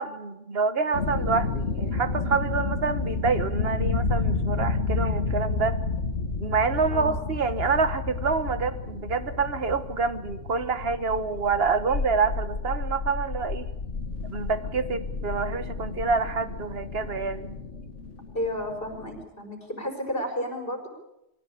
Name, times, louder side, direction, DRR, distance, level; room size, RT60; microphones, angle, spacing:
voice 1, 0.0-5.8 6.4-13.7 14.3-17.6, right 4 dB, 55° right, 12 dB, 1.5 m, -27 dB
sound 1, 0.9-19.2, left 3 dB, 70° left, 1.9 m, -31 dB
voice 2, 6.9-7.3 18.3-20.9, equal, 50° left, 4 dB, 5.1 m, -32 dB
23.0 x 16.5 x 8.5 m, 0.91 s
omnidirectional pair, 1.2 m